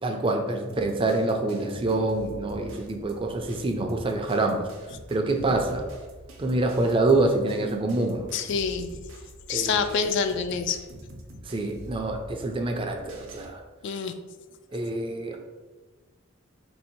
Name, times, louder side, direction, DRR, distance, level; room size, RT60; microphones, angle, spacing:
voice 1, 0.0-4.7 5.1-5.8 6.4-8.3 9.5-10.0 11.4-13.6 14.7-15.4, right 2 dB, 25° right, 3 dB, 0.4 m, -26 dB
sound 1, 0.7-13.5, right 1 dB, 80° right, 0.7 m, -46 dB
voice 2, 8.3-8.9 9.5-10.8 13.8-14.1, left 6 dB, 60° left, 8 dB, 0.3 m, -26 dB
3.3 x 2.7 x 4.4 m, 1.3 s
head